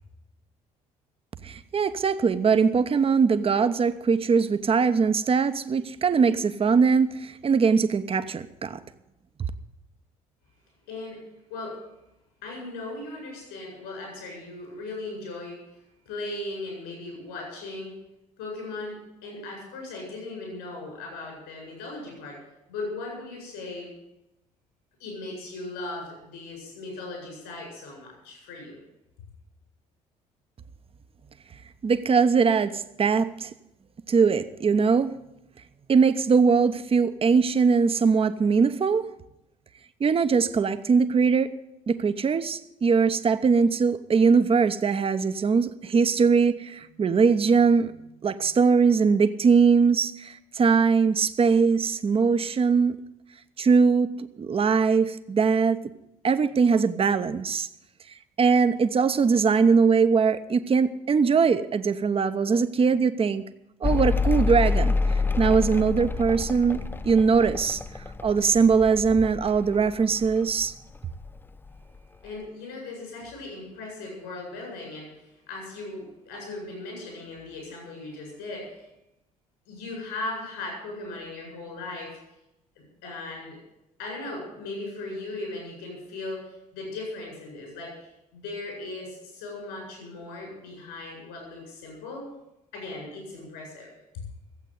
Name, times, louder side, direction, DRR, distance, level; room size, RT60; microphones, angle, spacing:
voice 1, 1.4-8.8 31.8-33.5 34.1-35.1 35.9-39.1 40.0-41.6 41.9-47.9 48.2-53.0 53.6-55.8 56.2-57.7 58.4-63.4 63.8-67.8 68.2-70.7, right 5 dB, 30° right, 0.9 m, -21 dB
voice 2, 10.9-11.2 11.5-11.8 12.4-15.8 16.0-17.9 18.4-22.4 22.7-23.9 25.0-28.8 72.2-78.9 79.7-82.2 82.8-83.6 84.0-92.3 92.7-94.2, left 2 dB, 75° left, 7.9 m, -38 dB
Mechanical fan, 63.8-70.7 71.0-71.8, left 4 dB, 10° left, 0.5 m, -27 dB
15.5 x 8.2 x 9.4 m
hypercardioid pair, 55°, 18 cm